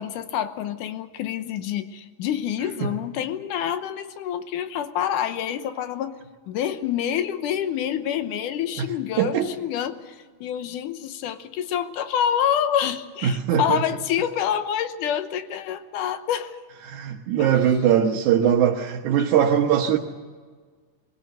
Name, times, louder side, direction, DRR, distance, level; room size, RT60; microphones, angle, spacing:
voice 1, 0.0-6.1 6.5-16.6 17.4-17.6, left 9 dB, 75° left, 10 dB, 2.4 m, -27 dB
voice 2, 9.2-9.5 13.2-13.8 16.9-20.0, right 9 dB, 70° right, -1 dB, 2.4 m, -21 dB
22.5 x 17.0 x 7.8 m, 1.5 s
omnidirectional pair, 3.9 m